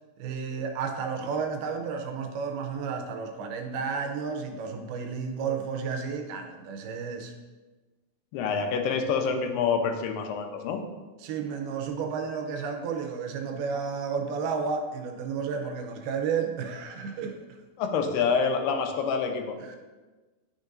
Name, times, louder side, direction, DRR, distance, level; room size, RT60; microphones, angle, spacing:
voice 1, 0.2-7.3 11.2-17.4 19.6-19.8, right 5 dB, 85° right, 5 dB, 2.5 m, -32 dB
voice 2, 8.3-10.8 17.8-19.6, left 5 dB, 80° left, 5 dB, 2.7 m, -27 dB
10.0 x 6.4 x 2.5 m, 1.2 s
omnidirectional pair, 4.7 m